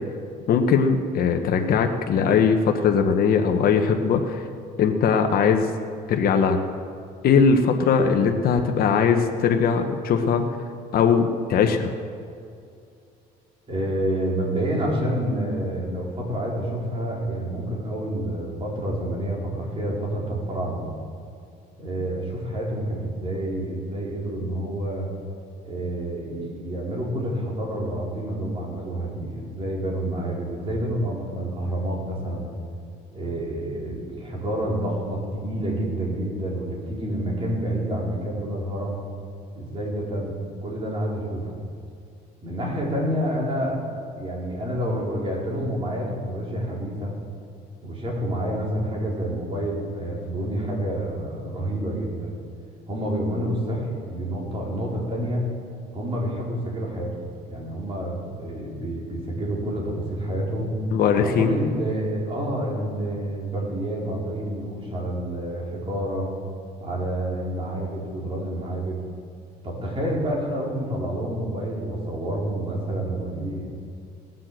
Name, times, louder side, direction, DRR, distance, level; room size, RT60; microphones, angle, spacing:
voice 1, 0.5-4.4 4.8-5.7 6.1-6.6 7.2-10.4 10.9-11.9 60.9-61.5, left 6 dB, 60° left, 5 dB, 1.1 m, -20 dB
voice 2, 13.7-20.8 21.8-25.1 25.6-32.5 33.1-39.0 39.5-41.6 42.4-43.9 44.2-47.1 47.8-52.3 52.9-55.5 55.9-60.7 61.2-66.3 66.8-69.0 69.6-73.7, right 1 dB, 30° right, -3 dB, 4.5 m, -28 dB
18.0 x 7.6 x 7.6 m, 2.4 s
cardioid pair, 110°, 17 cm